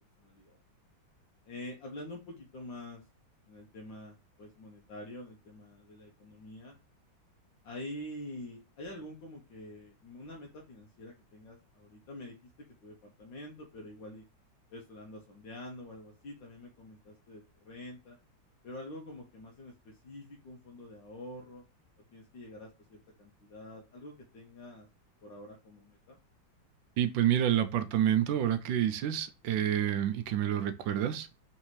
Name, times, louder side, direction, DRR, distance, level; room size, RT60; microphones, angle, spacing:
voice 1, 0.2-0.6 1.5-3.0 3.5-6.8 7.6-12.4 12.8-14.2 14.7-18.2 18.6-21.6 22.1-24.9 25.2-26.2, left 1 dB, 65° left, 1.6 m, -46 dB
voice 2, 27.0-31.3, right 10 dB, 75° right, 1.2 m, -28 dB
4.5 x 3.3 x 3.0 m
omnidirectional pair, 2.2 m